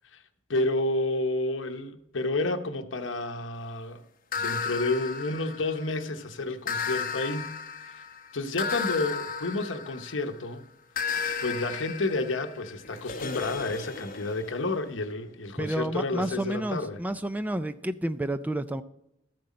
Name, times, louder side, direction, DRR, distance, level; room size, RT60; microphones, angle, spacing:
voice 1, 0.5-4.0 4.3-7.5 7.9-8.0 8.3-10.6 11.0-17.0, left 2 dB, 75° left, 0.9 m, -30 dB
sound 1, 4.3-6.0 6.7-10.4 11.0-14.7, left 6 dB, 50° left, 1.0 m, -34 dB
voice 2, 15.6-18.8, right 1 dB, 10° right, 0.3 m, -30 dB
13.0 x 7.7 x 4.2 m
head